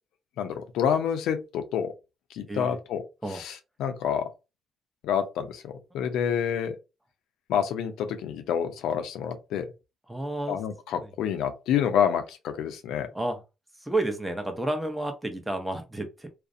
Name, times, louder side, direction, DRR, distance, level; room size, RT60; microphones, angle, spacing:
voice 1, 0.4-1.9 2.3-3.0 3.3-4.3 5.0-6.8 7.5-9.7 10.5-13.1, left 8 dB, 85° left, 0.4 m, -28 dB
voice 2, 10.1-10.6 13.1-13.4 13.8-16.3, right 2 dB, 5° right, 0.7 m, -30 dB
2.4 x 2.0 x 2.5 m
cardioid pair, 90°, 0 cm